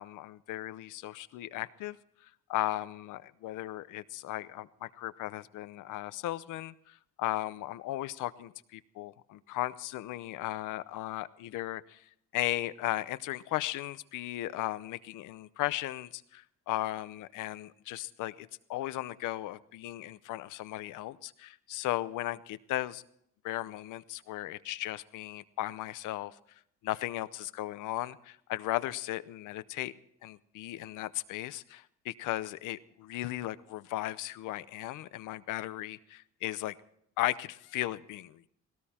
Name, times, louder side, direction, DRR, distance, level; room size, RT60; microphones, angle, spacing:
voice 1, 0.0-2.0 2.2-12.0 12.3-23.0 23.4-26.3 26.8-29.9 30.2-36.8 37.2-38.5, left 15 dB, 90° left, 15 dB, 0.7 m, -36 dB
18.0 x 17.5 x 4.3 m, 0.72 s
cardioid pair, 90°, 30 cm